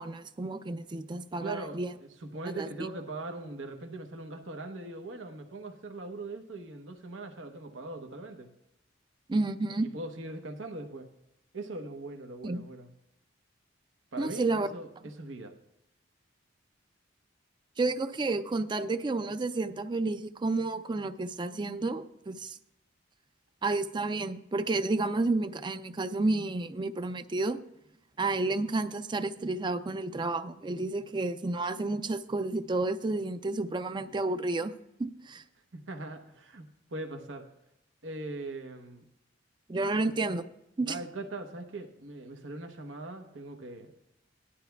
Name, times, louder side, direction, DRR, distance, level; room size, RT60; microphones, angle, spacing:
voice 1, 0.0-1.9 2.6-2.7 9.3-9.9 12.4-12.6 14.2-14.7 17.8-22.6 23.6-27.6 28.2-34.7 35.0-35.4 39.7-40.5 40.8-41.0, right 2 dB, 25° right, 11 dB, 0.4 m, -31 dB
voice 2, 1.4-8.5 9.9-11.1 11.5-12.9 14.1-15.5 35.7-37.5 38.0-39.1 40.9-44.0, right 2 dB, 90° right, 5 dB, 1.0 m, -41 dB
17.5 x 11.5 x 2.3 m, 0.85 s
head